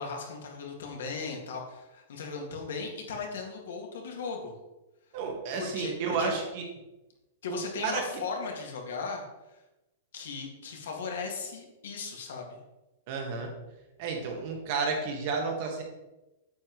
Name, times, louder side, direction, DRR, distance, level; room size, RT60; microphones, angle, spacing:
voice 1, 0.0-4.5 5.6-6.4 7.4-9.2 9.5-9.6 10.1-12.6, left 4 dB, 75° left, 1 dB, 2.0 m, -37 dB
voice 2, 5.1-6.6 7.5-8.0 13.1-13.5 14.0-15.8, right 4 dB, 35° right, 2 dB, 1.4 m, -31 dB
8.6 x 7.6 x 3.1 m, 0.99 s
supercardioid pair, 180°, 0 cm